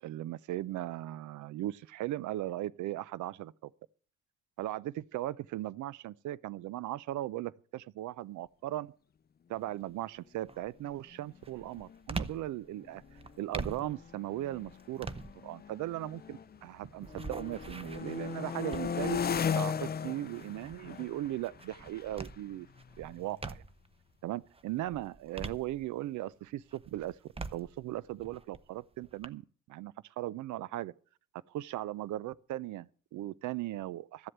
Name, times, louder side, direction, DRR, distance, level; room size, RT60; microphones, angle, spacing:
voice 1, 0.0-3.7 4.6-8.9 9.5-13.0 13.4-15.1 15.4-19.2 19.5-22.7 23.0-23.6 24.2-27.2 27.5-29.4 29.7-30.9 31.5-34.3, right 14 dB, 75° right, 0.6 m, -38 dB
sound 1, 9.5-9.9 10.4-24.0 24.4-26.2 26.7-29.3, right 3 dB, 20° right, 0.9 m, -45 dB
sound 2, 11.3-11.4 11.6-12.0 12.7-16.7 17.0-23.7, left 7 dB, 30° left, 0.5 m, -38 dB
14.0 x 7.7 x 8.0 m
cardioid pair, 90°, 30 cm